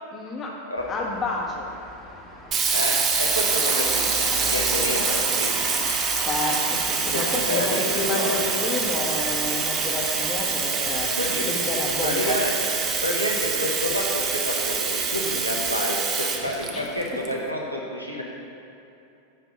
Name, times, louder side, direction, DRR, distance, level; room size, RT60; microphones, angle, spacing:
voice 1, 0.1-0.6 0.9-1.7 6.2-11.1 11.5-12.4 16.7-16.9, left 3 dB, 25° left, -1 dB, 1.2 m, -30 dB
Traffic noise roadway noise, 0.8-15.7, left 1 dB, ahead, 1.4 m, -39 dB
Sink (filling or washing), 2.5-17.3, right 5 dB, 30° right, 0.7 m, -25 dB
voice 2, 2.7-5.7 7.1-8.4 11.2-11.5 12.0-12.7 13.0-18.2, left 1 dB, 90° right, -1 dB, 1.0 m, -29 dB
9.6 x 3.4 x 5.4 m, 2.8 s
figure-of-eight pair, 90°, 0 cm